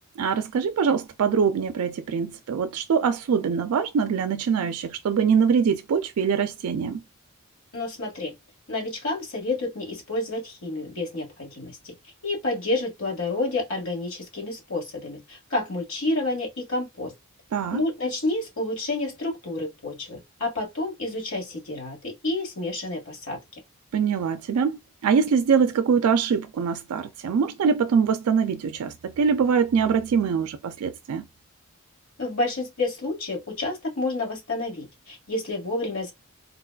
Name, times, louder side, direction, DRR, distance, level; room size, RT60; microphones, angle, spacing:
voice 1, 0.2-7.0 17.5-17.8 23.9-31.3, right 6 dB, 75° right, 0.3 m, -23 dB
voice 2, 7.7-8.3 8.7-11.9 12.2-17.1 17.7-23.4 32.2-36.1, left 2 dB, 70° left, 1.6 m, -29 dB
3.8 x 2.3 x 2.2 m
head